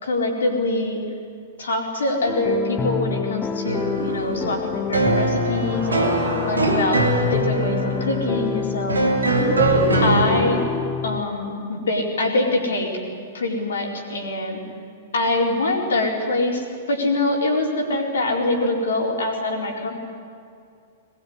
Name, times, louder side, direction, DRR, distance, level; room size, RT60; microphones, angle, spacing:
voice 1, 0.0-1.0 1.6-9.0 10.0-10.7 11.0-12.9 13.3-14.6 15.1-19.9, left 2 dB, 65° left, 2 dB, 4.5 m, -24 dB
sound 1, 2.3-11.2, left 6 dB, 20° left, 0.6 m, -27 dB
sound 2, 3.6-10.2, right 2 dB, 75° right, 2.8 m, -23 dB
sound 3, 3.9-4.8 5.5-7.3 9.3-10.8, right 2 dB, 60° right, 6.5 m, -26 dB
22.0 x 20.5 x 9.8 m, 2.3 s
figure-of-eight pair, 100°, 0 cm